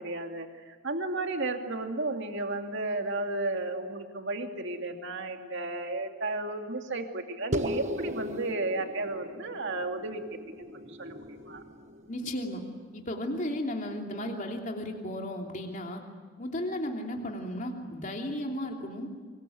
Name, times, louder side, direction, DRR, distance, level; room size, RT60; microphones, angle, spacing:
voice 1, 0.0-10.2 10.7-11.6, right 2 dB, 55° right, 4 dB, 2.6 m, -33 dB
sound 1, 7.5-12.3, equal, 35° right, 1.3 m, -37 dB
voice 2, 12.1-12.6 12.9-16.0 16.4-19.1, left 1 dB, 35° left, 2 dB, 3.1 m, -34 dB
26.0 x 22.5 x 9.3 m, 1.5 s
head